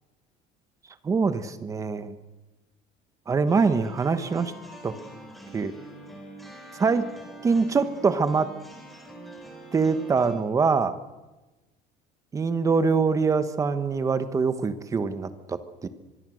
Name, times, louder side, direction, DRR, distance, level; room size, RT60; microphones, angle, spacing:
voice 1, 1.0-2.1 3.3-4.5 4.8-4.9 5.5-5.7 6.7-7.1 7.4-8.5 9.7-11.0 12.3-15.9, right 5 dB, 20° right, 11 dB, 1.3 m, -24 dB
sound 1, 3.5-10.4, right 2 dB, ahead, 4.3 m, -44 dB
25.0 x 22.5 x 6.4 m, 1.1 s
cardioid pair, 170°, 17 cm